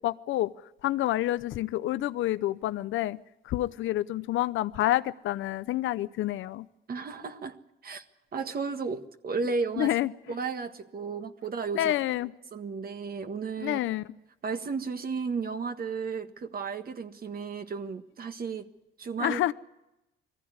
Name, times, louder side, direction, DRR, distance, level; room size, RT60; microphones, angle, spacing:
voice 1, 0.0-0.5 0.8-3.2 3.4-6.7 9.8-10.1 11.7-12.3 13.6-14.1 19.2-19.5, left 14 dB, 80° left, 0.7 m, -28 dB
voice 2, 6.9-7.6 7.8-8.0 8.3-9.9 10.3-11.9 12.5-13.8 14.4-18.7 19.0-19.4, right 5 dB, 50° right, 1.5 m, -33 dB
22.0 x 15.0 x 9.6 m
cardioid pair, 90°, 20 cm